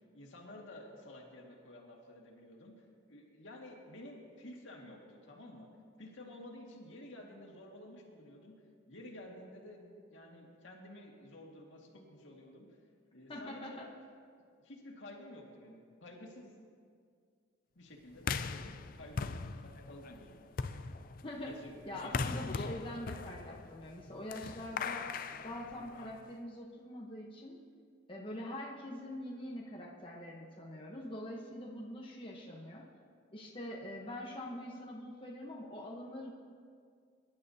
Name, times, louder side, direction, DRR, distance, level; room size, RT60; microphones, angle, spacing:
voice 1, 0.0-5.7 6.0-8.5 8.9-12.7 13.1-13.8 14.6-16.5 17.8-20.3 21.4-22.5, left 1 dB, 75° left, -1 dB, 2.1 m, -52 dB
voice 2, 13.3-13.9 21.2-21.5 21.9-25.1 25.4-27.6 28.1-32.9 33.3-36.3, left 1 dB, 25° left, -3 dB, 1.1 m, -44 dB
sound 1, 18.2-26.3, left 4 dB, 45° left, 0.4 m, -40 dB
23.0 x 11.0 x 2.8 m, 2.1 s
head